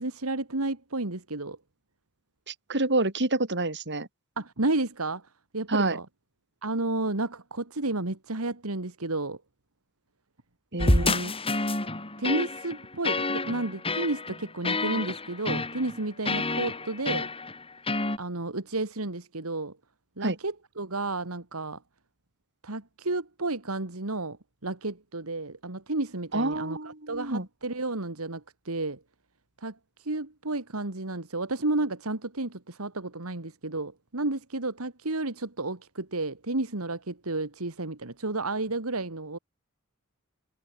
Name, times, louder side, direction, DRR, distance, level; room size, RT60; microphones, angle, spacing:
voice 1, 0.0-1.6 4.4-5.2 5.5-6.1 6.6-9.4 10.9-11.1 12.2-17.3 18.2-19.8 20.2-21.8 22.6-24.4 24.6-29.0 29.6-39.4, right 2 dB, 70° right, 2.2 m, -32 dB
voice 2, 2.5-4.1 5.7-6.0 10.7-11.3 20.2-20.4 26.3-27.5, right 2 dB, 55° right, 5.0 m, -28 dB
sound 1, 10.8-18.2, left 2 dB, 25° left, 4.7 m, -29 dB
head